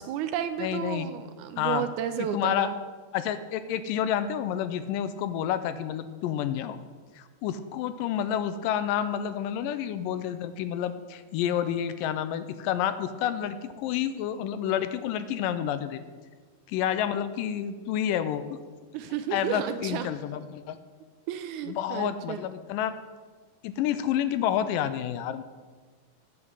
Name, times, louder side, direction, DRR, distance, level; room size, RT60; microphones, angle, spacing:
voice 1, 0.0-2.7 18.9-20.1 21.3-22.4, right 9 dB, 85° right, 9 dB, 1.7 m, -32 dB
voice 2, 0.6-1.1 1.6-1.8 2.3-2.7 3.1-6.8 7.2-16.0 16.7-18.6 19.3-20.8 21.7-22.9 23.6-25.4, left 10 dB, 85° left, 12 dB, 2.2 m, -29 dB
9.5 x 5.9 x 7.9 m, 1.4 s
omnidirectional pair, 3.9 m